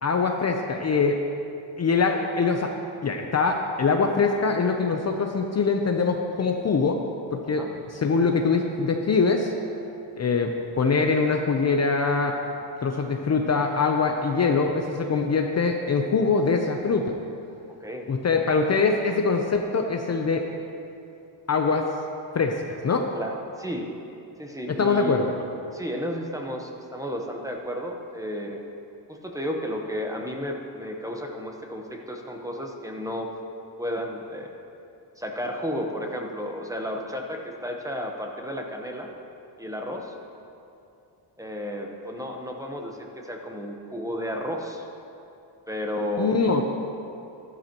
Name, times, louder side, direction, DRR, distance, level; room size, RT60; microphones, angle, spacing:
voice 1, 0.0-1.2 1.8-2.7 3.0-7.0 7.3-9.5 10.2-12.3 12.8-17.1 18.1-20.4 21.5-21.9 22.3-23.0 24.8-25.3 46.2-46.6, left 4 dB, 35° left, 3 dB, 0.7 m, -23 dB
voice 2, 23.1-23.9 24.4-25.2 25.7-28.6 29.1-33.3 33.8-34.5 35.2-39.1 39.6-40.1 41.4-44.8 45.7-46.4, equal, 5° right, 1 dB, 1.0 m, -32 dB
13.5 x 12.0 x 3.0 m, 2.7 s
cardioid pair, 120°, 47 cm